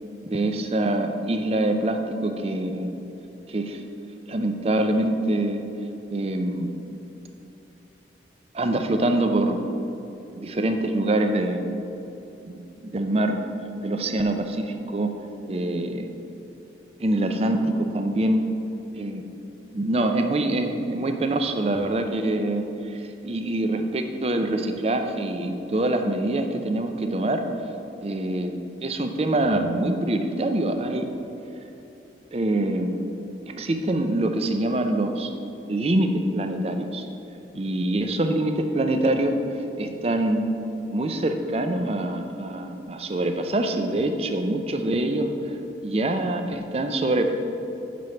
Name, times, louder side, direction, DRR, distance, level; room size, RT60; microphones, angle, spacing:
voice 1, 0.2-2.9 3.5-3.8 4.3-5.6 6.1-6.7 8.5-9.6 10.4-11.7 12.5-13.4 13.8-15.1 15.5-16.1 17.0-18.5 19.0-19.2 19.7-27.4 28.0-31.1 32.3-32.9 33.5-35.3 35.6-37.0 37.5-39.4 39.8-40.5 40.9-45.3 45.8-47.3, right 1 dB, 35° right, 6 dB, 0.4 m, -25 dB
9.2 x 3.2 x 5.7 m, 2.9 s
head